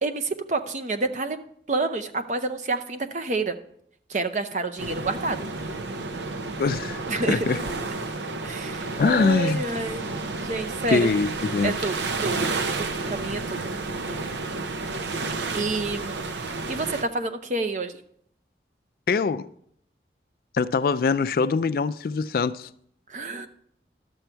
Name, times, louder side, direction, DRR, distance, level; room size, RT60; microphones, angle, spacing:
voice 1, 0.0-1.4 1.7-3.6 4.1-5.5 7.1-7.6 8.4-10.1 10.4-11.1 11.6-13.7 15.5-16.3 16.7-18.0 23.1-23.5, right 3 dB, 40° right, 0.6 m, -29 dB
sound 1, 4.8-17.0, right 3 dB, 85° right, 0.7 m, -31 dB
voice 2, 6.6-7.0 7.3-7.6 9.0-9.6 10.9-11.7 19.1-19.5 20.5-22.7, left 4 dB, 55° left, 0.3 m, -23 dB
11.5 x 7.0 x 4.5 m
head